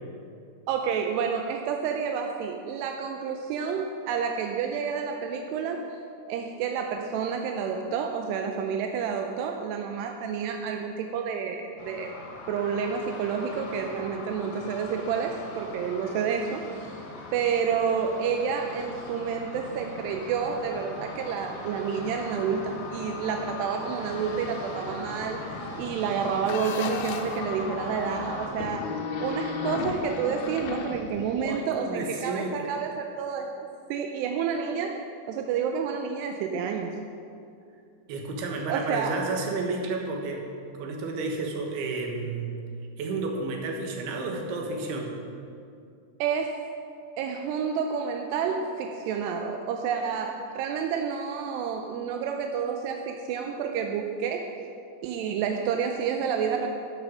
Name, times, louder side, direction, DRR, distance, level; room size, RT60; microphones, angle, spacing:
voice 1, 0.7-5.8 6.3-12.1 12.5-16.6 17.3-33.5 33.9-36.9 38.7-39.2 46.2-46.7 47.2-54.4 55.0-56.7, right 6 dB, 85° right, 3 dB, 2.5 m, -29 dB
sound 1, 11.8-28.5, left 2 dB, 60° left, 2.0 m, -39 dB
sound 2, 26.5-27.4 28.5-31.6, left 5 dB, 85° left, 2.2 m, -34 dB
voice 2, 31.4-32.7 38.1-40.4 40.7-42.6 43.0-45.1, right 3 dB, 65° right, 2 dB, 3.0 m, -31 dB
11.5 x 8.6 x 6.2 m, 2.4 s
omnidirectional pair, 5.4 m